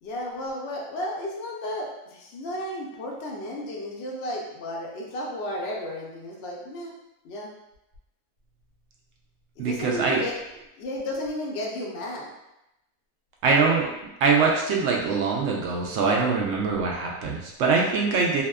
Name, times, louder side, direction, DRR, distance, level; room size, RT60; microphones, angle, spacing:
voice 1, 0.0-6.9 7.2-7.5 9.6-10.3 10.8-12.3, left 1 dB, 65° left, -2 dB, 0.7 m, -33 dB
voice 2, 9.6-10.2 13.4-13.9 14.2-18.4, right 4 dB, 70° right, -1 dB, 0.8 m, -23 dB
2.7 x 2.2 x 2.2 m, 0.90 s
omnidirectional pair, 1.5 m